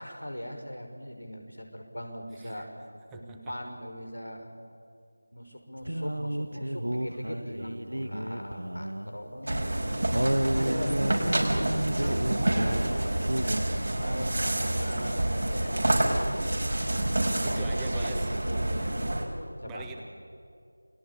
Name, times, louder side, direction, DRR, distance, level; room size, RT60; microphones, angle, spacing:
voice 1, 0.0-2.7 3.1-4.5 5.3-12.2 12.5-16.4 17.3-19.1 19.5-19.9, equal, 90° left, 3 dB, 6.3 m, -40 dB
sound 1, 5.9-9.2 9.4-9.5 10.1-12.9 13.2-13.6, right 1 dB, 80° right, 1.6 m, -31 dB
sound 2, 9.5-19.2, right 1 dB, 55° right, 5.3 m, -28 dB
voice 2, 17.4-18.3 19.7-20.0, right 3 dB, 5° right, 3 dB, 1.2 m, -42 dB
29.0 x 20.0 x 8.7 m, 2.4 s
figure-of-eight pair, 170°, 0 cm